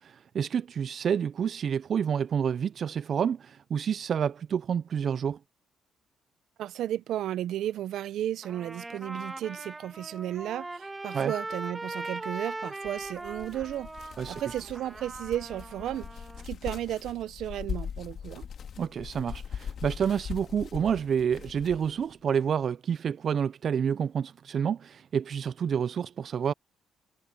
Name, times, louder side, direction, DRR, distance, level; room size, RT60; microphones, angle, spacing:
voice 1, 0.0-5.4 11.1-11.3 14.2-14.4 18.8-26.5, right 7 dB, 55° right, 0.3 m, -29 dB
voice 2, 6.6-18.5, right 12 dB, 80° right, 0.8 m, -34 dB
Trumpet, 8.4-16.5, right 2 dB, 20° right, 2.4 m, -40 dB
sound 1, 12.8-22.1, left 7 dB, 55° left, 1.9 m, -41 dB
cardioid pair, 90°, 0 cm